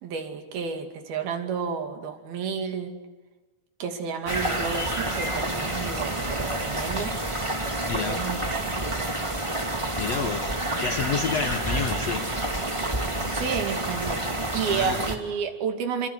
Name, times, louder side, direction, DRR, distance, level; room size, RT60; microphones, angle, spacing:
voice 1, 0.0-2.9 3.8-7.1 7.9-9.1 13.3-14.2 14.5-16.1, right 6 dB, 70° right, 5 dB, 4.4 m, -31 dB
sound 1, 4.3-15.2, right 1 dB, 10° right, 1.4 m, -29 dB
voice 2, 7.8-8.2 9.9-12.3 14.7-15.1, left 6 dB, 65° left, 7 dB, 1.7 m, -30 dB
28.0 x 24.5 x 8.2 m, 1.2 s
omnidirectional pair, 4.5 m